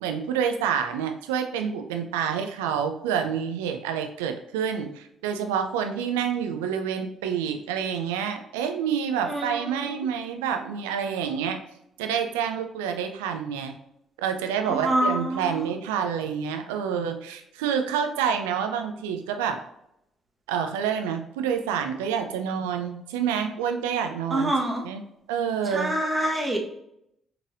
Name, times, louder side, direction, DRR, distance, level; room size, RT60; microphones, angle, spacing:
voice 1, 0.0-11.6 12.0-13.7 14.2-19.6 20.5-24.5 24.8-25.0 25.3-25.9, right 7 dB, 75° right, 6 dB, 0.4 m, -28 dB
voice 2, 9.3-10.0 14.7-15.4 24.3-24.8 25.7-26.6, right 1 dB, 20° right, -1 dB, 1.2 m, -26 dB
5.8 x 3.2 x 2.5 m, 0.78 s
figure-of-eight pair, 45°, 0 cm